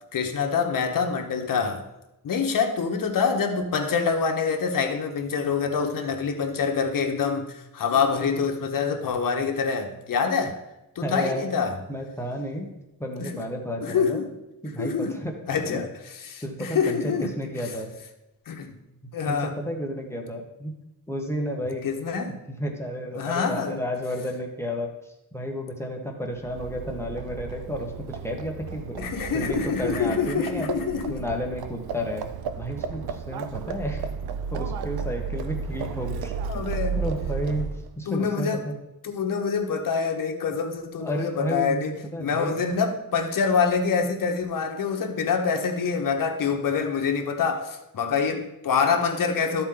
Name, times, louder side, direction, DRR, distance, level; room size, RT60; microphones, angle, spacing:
voice 1, 0.1-1.9 2.2-10.6 10.9-11.7 13.2-13.3 13.8-14.3 14.8-15.2 15.5-17.3 18.5-18.8 19.1-19.5 21.8-22.4 23.1-23.8 29.0-31.2 36.5-37.0 38.1-38.6 39.0-41.9 42.2-49.6, left 5 dB, 60° left, 1.1 m, -26 dB
voice 2, 11.0-11.4 11.9-12.7 13.0-14.2 14.6-15.4 15.7-15.8 16.4-17.9 19.3-20.8 21.1-21.9 22.5-30.7 31.1-32.3 32.6-34.1 34.5-36.3 36.9-37.7 38.0-38.8 41.0-42.6, equal, 5° left, 1.1 m, -32 dB
Livestock farm animals working animals, 26.3-38.0, right 6 dB, 80° right, 0.6 m, -33 dB
13.0 x 4.4 x 3.8 m
wide cardioid pair, 140°, 37 cm